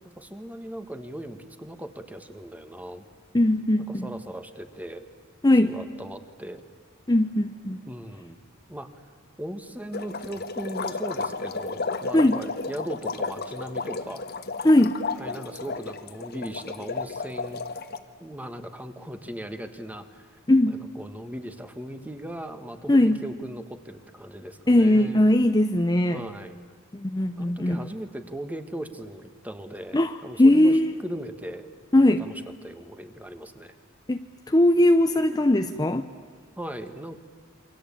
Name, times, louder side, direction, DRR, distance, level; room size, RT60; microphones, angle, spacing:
voice 1, 0.2-3.1 3.9-5.0 5.6-6.6 7.9-8.4 8.7-8.9 9.4-14.2 15.2-17.6 18.2-20.3 20.6-25.2 26.1-26.6 27.4-30.7 31.0-31.7 32.2-33.8 36.6-37.2, right 1 dB, 5° right, 9 dB, 1.5 m, -38 dB
voice 2, 3.3-4.1 5.4-5.8 7.1-7.8 12.1-12.4 14.6-15.0 20.5-20.8 22.9-23.2 24.7-26.2 26.9-27.8 29.9-30.9 31.9-32.3 34.1-34.2 34.5-36.1, left 1 dB, 20° left, 7 dB, 0.7 m, -20 dB
sound 1, 9.9-18.0, left 4 dB, 50° left, 1.4 m, -33 dB
28.5 x 24.5 x 8.6 m, 1.6 s
head